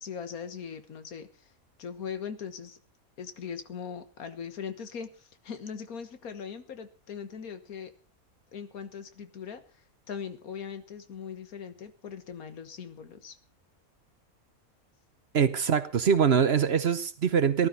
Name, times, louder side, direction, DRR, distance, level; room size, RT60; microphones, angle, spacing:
voice 1, 0.0-1.5 1.8-2.8 3.2-7.9 8.5-13.4, left 7 dB, 80° left, 10 dB, 1.8 m, -40 dB
voice 2, 15.3-17.7, right 7 dB, 50° right, 13 dB, 1.0 m, -23 dB
18.5 x 12.5 x 4.1 m, 0.35 s
omnidirectional pair, 1.5 m